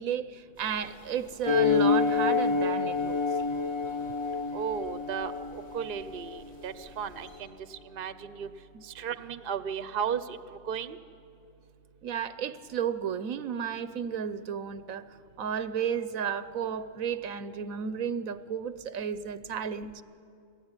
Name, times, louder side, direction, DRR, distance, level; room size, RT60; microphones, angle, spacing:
voice 1, 0.0-3.2 8.7-8.8 12.0-15.1 15.4-20.0, right 8 dB, 80° right, 13 dB, 1.3 m, -33 dB
sound 1, 0.5-7.4, equal, 60° left, 6.1 m, -54 dB
sound 2, 1.5-6.4, left 5 dB, 25° left, 0.7 m, -27 dB
voice 2, 4.5-8.5 8.8-10.4 10.6-11.0, right 7 dB, 45° right, 12 dB, 1.0 m, -35 dB
30.0 x 20.5 x 9.8 m, 2.5 s
omnidirectional pair, 1.4 m